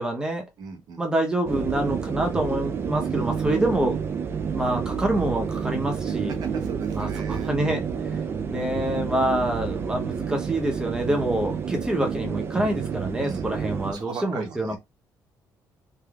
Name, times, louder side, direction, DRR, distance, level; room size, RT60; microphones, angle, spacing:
voice 1, 0.0-0.4 1.0-4.0 4.5-6.4 6.9-14.8, right 1 dB, 10° right, 0.8 m, -26 dB
voice 2, 0.6-1.0 3.0-3.4 6.1-7.6 13.2-13.4 13.9-14.8, right 6 dB, 70° right, 0.9 m, -37 dB
sound 1, 1.5-13.9, right 6 dB, 35° right, 0.4 m, -29 dB
3.6 x 2.7 x 2.3 m
cardioid pair, 150°, 7 cm